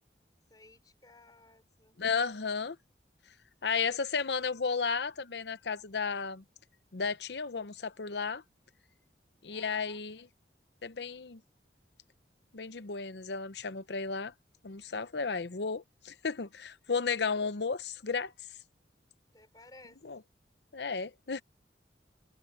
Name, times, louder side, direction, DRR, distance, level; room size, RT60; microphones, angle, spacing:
voice 1, 0.5-2.0 9.5-10.0 19.3-20.0, left 2 dB, 20° left, 3.8 m, -56 dB
voice 2, 2.0-2.8 3.6-6.4 6.9-8.4 9.4-10.2 10.8-11.4 12.5-14.3 14.6-18.3 20.1-20.2 20.7-21.4, left 5 dB, 70° left, 0.8 m, -33 dB
head